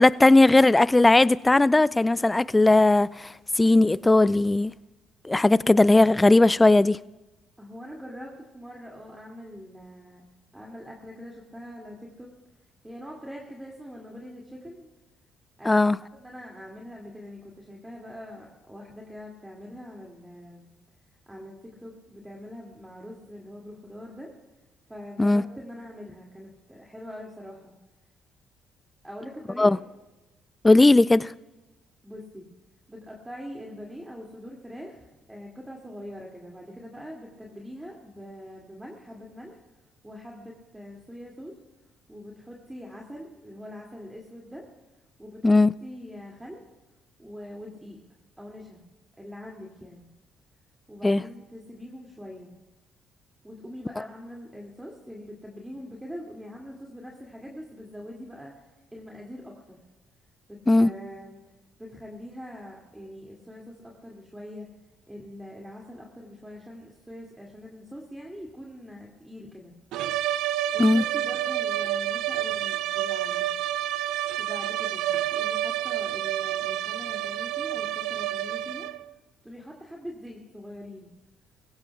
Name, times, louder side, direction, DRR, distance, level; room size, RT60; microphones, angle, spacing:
voice 1, 0.0-3.3 3.6-4.7 5.2-7.0 15.7-16.0 25.2-25.4 29.6-29.8 30.6-31.3 45.4-45.7 51.0-51.2 60.7-60.9 70.8-71.0, left 2 dB, 20° left, 0.4 m, -18 dB
voice 2, 7.6-10.2 10.5-12.3 12.8-14.9 15.6-20.7 21.3-24.3 24.9-27.7 29.0-29.8 32.0-32.5 32.9-39.6 40.0-41.6 42.1-44.7 45.2-46.6 47.2-48.0 48.4-48.8 49.2-50.1 50.9-52.5 53.4-59.8 60.5-61.4 61.8-64.7 65.1-69.7 70.7-73.5 74.4-78.9 79.4-81.2, equal, 10° right, 2.4 m, -43 dB
sound 1, 69.9-79.1, right 12 dB, 75° right, 0.3 m, -29 dB
21.0 x 16.0 x 2.3 m
hypercardioid pair, 55°, 0 cm